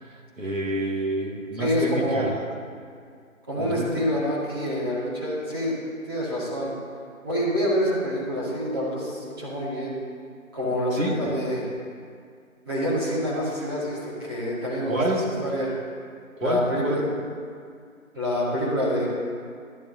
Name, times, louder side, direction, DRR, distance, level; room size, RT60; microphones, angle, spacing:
voice 1, 0.0-2.5 3.6-3.9 10.9-11.3 14.9-15.3 16.4-17.1, right 1 dB, 65° right, -1 dB, 1.8 m, -28 dB
voice 2, 1.6-2.2 3.5-5.7 6.1-6.7 7.2-9.9 10.5-11.6 12.7-15.7 16.4-17.1 18.1-19.1, equal, 15° right, -10 dB, 1.9 m, -27 dB
12.5 x 8.2 x 2.8 m, 2.2 s
figure-of-eight pair, 165°, 42 cm